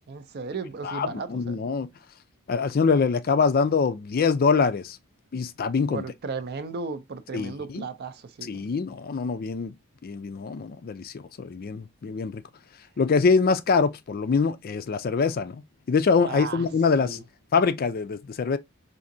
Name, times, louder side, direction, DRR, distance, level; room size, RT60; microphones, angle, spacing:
voice 1, 0.1-1.6 5.9-8.7 16.2-16.7 17.0-17.2, right 4 dB, 45° right, 0.5 m, -35 dB
voice 2, 0.8-1.9 2.5-5.0 5.3-6.0 7.3-7.9 8.5-9.7 10.0-12.4 13.0-15.6 15.9-17.2 17.5-18.6, left 5 dB, 45° left, 0.4 m, -24 dB
4.8 x 2.6 x 2.6 m
head